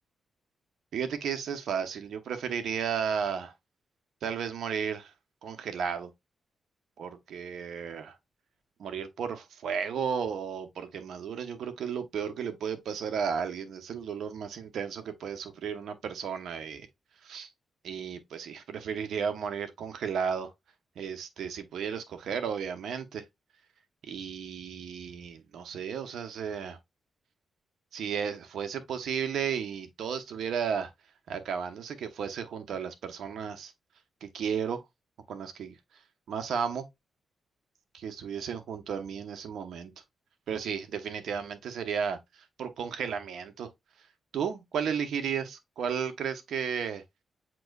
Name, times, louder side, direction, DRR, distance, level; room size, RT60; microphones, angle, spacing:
voice 1, 0.9-3.5 4.2-5.1 5.4-6.1 7.0-8.2 8.8-16.9 17.2-17.5 17.8-20.5 21.0-23.2 24.0-26.8 27.9-30.9 31.3-33.7 34.2-34.8 35.3-35.7 36.3-36.9 37.9-39.9 40.5-43.7 44.3-47.0, right 7 dB, 80° right, 0.9 m, -34 dB
7.6 x 3.0 x 2.3 m
cardioid pair, 85°, 0 cm